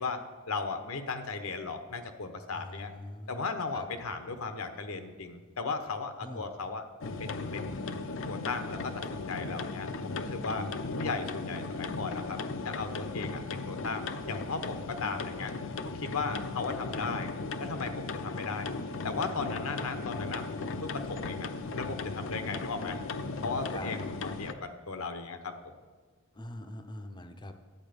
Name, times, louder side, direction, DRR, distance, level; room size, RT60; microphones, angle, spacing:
voice 1, 0.0-2.9 3.3-6.9 7.2-7.9 8.3-10.7 10.9-15.5 15.8-17.3 17.6-18.7 19.0-23.0 23.4-25.7, left 4 dB, 80° left, 7 dB, 1.0 m, -36 dB
voice 2, 2.5-3.4 3.7-3.9 6.2-6.5 10.5-10.7 16.2-16.4 22.3-23.1 23.7-23.9 26.3-27.6, left 1 dB, 20° left, 7 dB, 0.6 m, -43 dB
sound 1, 7.0-24.5, left 3 dB, 60° left, 0.6 m, -37 dB
11.0 x 8.6 x 5.2 m, 1.4 s
head